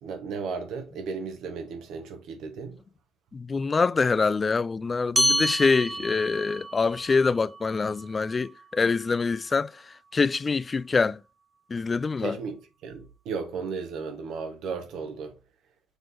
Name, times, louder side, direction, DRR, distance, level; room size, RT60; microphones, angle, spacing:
voice 1, 0.0-2.8 12.2-15.3, right 5 dB, 80° right, 1.6 m, -35 dB
voice 2, 3.3-9.7 10.1-11.2 11.7-12.4, left 4 dB, 35° left, 0.4 m, -25 dB
sound 1, 5.2-10.0, equal, 10° right, 1.6 m, -31 dB
6.9 x 3.9 x 3.9 m
supercardioid pair, 60°, 0 cm